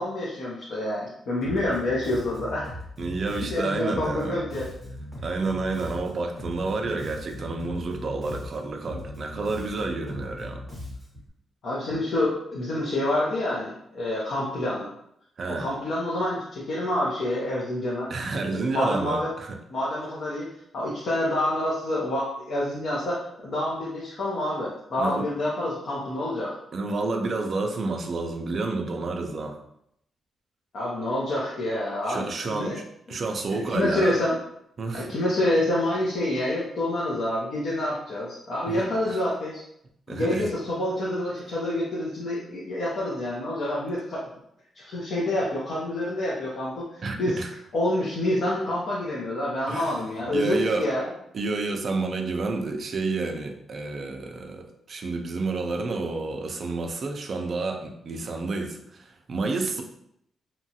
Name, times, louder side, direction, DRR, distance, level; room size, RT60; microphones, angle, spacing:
voice 1, 0.0-2.7 3.5-4.7 11.6-14.9 15.6-18.1 18.5-19.3 19.7-20.5 20.7-26.6 30.7-32.8 33.1-33.2 33.5-34.4 34.9-39.6 40.1-44.2 44.7-47.4 47.7-51.1, left 1 dB, 55° left, -7 dB, 0.7 m, -27 dB
Bass guitar, 1.4-11.3, left 1 dB, 10° left, 0.9 m, -39 dB
voice 2, 3.0-4.4 5.2-10.6 15.4-15.7 18.1-19.6 25.0-25.3 26.7-29.6 32.1-34.1 34.8-35.1 38.7-39.2 40.1-40.5 47.0-47.5 49.7-50.0 50.3-50.9 51.3-59.8, right 3 dB, 40° right, 3 dB, 0.3 m, -30 dB
2.8 x 2.3 x 2.7 m, 0.74 s
wide cardioid pair, 165°, 0 cm